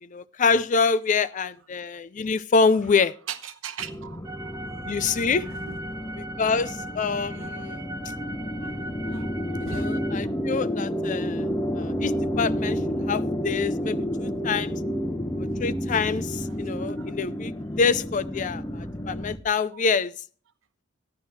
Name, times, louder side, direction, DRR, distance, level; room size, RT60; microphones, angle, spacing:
voice 1, 0.0-3.1 4.8-5.5 6.2-7.8 9.6-11.5 11.7-12.8 13.1-14.8 15.4-20.1, left 5 dB, 40° left, 0.4 m, -26 dB
voice 2, 3.3-4.6 5.5-5.8 7.3-7.5 9.1-9.3 9.6-9.9 10.2-10.3 16.7-17.1, right 6 dB, 80° right, 1.0 m, -38 dB
sound 1, 3.8-19.4, equal, 15° left, 0.8 m, -30 dB
sound 2, 4.2-10.1, right 1 dB, 20° right, 0.5 m, -39 dB
14.0 x 10.5 x 3.2 m
head